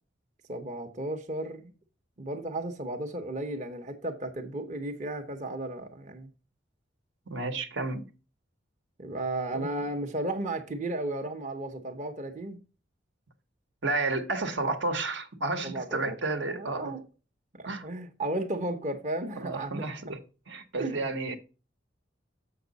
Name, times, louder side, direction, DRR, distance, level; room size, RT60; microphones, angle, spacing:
voice 1, 0.5-1.7 2.2-6.3 9.0-12.6 15.6-16.1 16.4-17.0 17.6-19.8 20.8-21.2, right 1 dB, 40° right, 0.9 m, -34 dB
voice 2, 7.3-8.0 9.5-9.7 13.8-17.0 17.6-17.9 19.4-20.2 20.5-21.4, right 3 dB, 70° right, 1.2 m, -31 dB
7.1 x 5.8 x 3.9 m
head